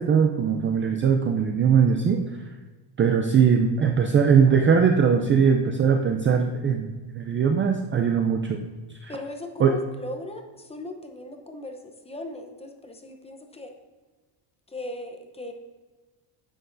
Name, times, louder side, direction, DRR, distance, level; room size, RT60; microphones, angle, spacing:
voice 1, 0.0-2.2 3.0-8.6 9.0-9.1 9.6-9.7, right 6 dB, 25° right, 4 dB, 0.4 m, -20 dB
voice 2, 9.1-13.7 14.7-15.5, left 1 dB, 15° left, 4 dB, 0.7 m, -38 dB
9.8 x 7.5 x 2.6 m, 1.3 s
cardioid pair, 140°, 48 cm